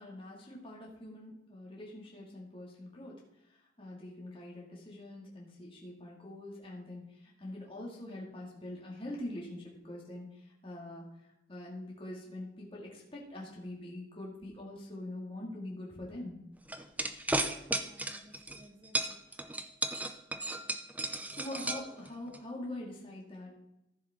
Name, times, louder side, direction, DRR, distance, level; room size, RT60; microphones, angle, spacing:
voice 1, 0.0-3.2 3.5-11.0 11.5-16.4 21.3-23.5, left 1 dB, 30° left, -4 dB, 2.4 m, -44 dB
sound 1, 16.7-18.6 18.9-22.4, right 2 dB, 10° right, 0.6 m, -34 dB
voice 2, 17.7-19.2 20.3-20.8, equal, 30° right, 6 dB, 1.0 m, -59 dB
14.0 x 7.3 x 3.7 m, 0.87 s
head